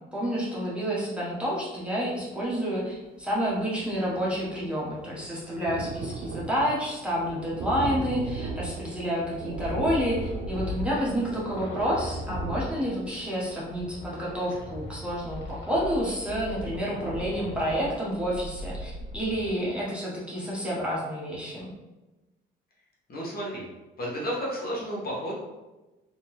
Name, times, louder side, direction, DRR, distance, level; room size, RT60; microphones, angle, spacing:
voice 1, 0.1-21.7, equal, 5° right, -7 dB, 1.3 m, -29 dB
Thunder, 3.2-3.3 3.5-16.1 16.6-16.7 17.0-17.1, right 4 dB, 65° right, 0.5 m, -38 dB
sound 1, 9.5-19.5, left 1 dB, 70° left, 1.5 m, -39 dB
voice 2, 23.1-23.7 24.0-25.4, equal, 50° left, -5 dB, 1.4 m, -32 dB
3.3 x 2.9 x 3.2 m, 1.1 s
cardioid pair, 90°, 20 cm